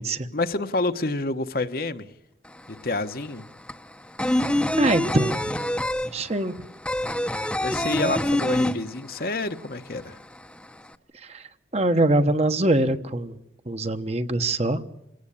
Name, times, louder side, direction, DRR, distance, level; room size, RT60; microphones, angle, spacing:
voice 1, 0.3-2.1 2.8-3.5 7.6-10.2, left 2 dB, 55° left, 9 dB, 1.1 m, -28 dB
sound 1, 2.4-2.5 2.8-9.4 9.6-9.7 10.1-10.9, left 1 dB, 5° left, 0.8 m, -25 dB
voice 2, 4.8-5.6 6.1-6.5 7.9-8.1 11.1-11.5 11.7-13.4 13.7-14.8, right 2 dB, 35° right, 8 dB, 1.2 m, -23 dB
28.0 x 17.5 x 8.7 m, 0.87 s
head